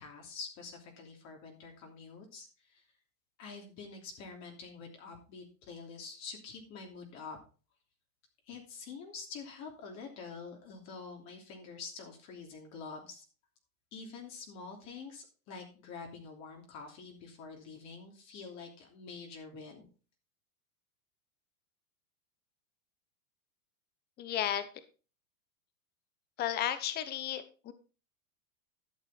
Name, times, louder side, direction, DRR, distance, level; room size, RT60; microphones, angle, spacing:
voice 1, 0.0-2.8 3.4-7.4 8.5-13.2 13.9-19.9, left 4 dB, 40° left, 1 dB, 3.0 m, -47 dB
voice 2, 24.2-24.6 26.4-27.7, left 11 dB, 25° left, 12 dB, 0.9 m, -33 dB
11.5 x 6.8 x 4.3 m, 0.36 s
hypercardioid pair, 130°, 42 cm